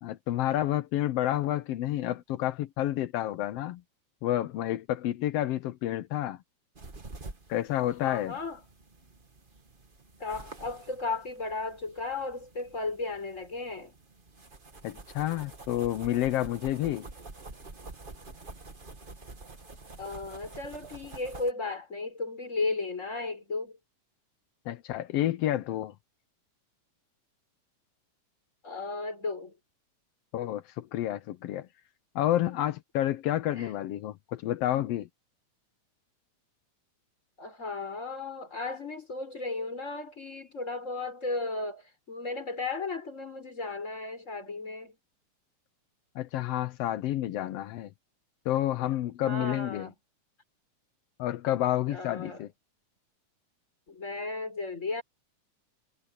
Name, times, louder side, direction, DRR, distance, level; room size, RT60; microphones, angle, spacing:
voice 1, 0.0-3.8 4.2-6.4 7.5-8.4 14.8-17.1 24.7-25.9 30.3-31.7 32.1-35.1 46.1-47.9 48.4-49.9 51.2-52.5, left 13 dB, 75° left, 1.4 m, -29 dB
sound 1, 6.7-21.5, right 3 dB, 25° right, 1.1 m, -48 dB
voice 2, 8.0-8.6 10.2-13.9 20.0-23.8 28.6-29.5 33.5-33.7 37.4-45.0 49.2-49.9 51.9-52.4 53.9-55.0, left 3 dB, 20° left, 5.2 m, -35 dB
omnidirectional pair, 3.6 m